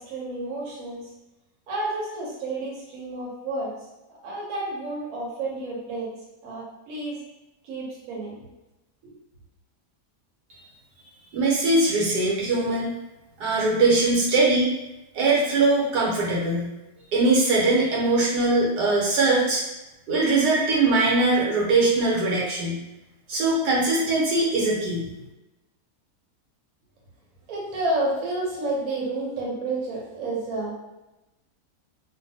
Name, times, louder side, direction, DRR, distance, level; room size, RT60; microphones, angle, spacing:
voice 1, 0.1-1.0 1.7-3.7 4.2-6.1 6.4-7.2 7.6-8.4 9.0-9.1 27.5-30.7, right 2 dB, 65° right, -4 dB, 1.2 m, -30 dB
voice 2, 11.3-12.9 13.4-14.7 15.1-16.7 17.1-19.6 20.1-22.8 23.3-25.0, right 2 dB, 85° right, -4 dB, 1.3 m, -21 dB
2.6 x 2.5 x 2.7 m, 0.98 s
omnidirectional pair, 1.7 m